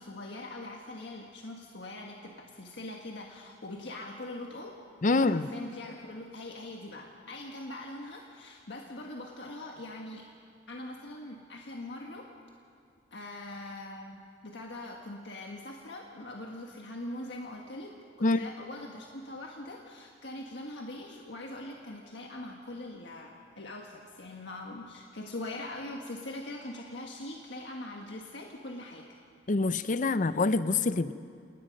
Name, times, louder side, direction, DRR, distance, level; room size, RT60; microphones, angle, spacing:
voice 1, 0.0-4.8 5.1-10.3 10.7-12.3 13.1-29.1, left 1 dB, 75° left, 0 dB, 1.6 m, -42 dB
voice 2, 5.0-5.5 18.2-18.5 29.5-31.1, left 3 dB, 45° left, 13 dB, 0.6 m, -26 dB
27.5 x 19.5 x 5.3 m, 2.4 s
head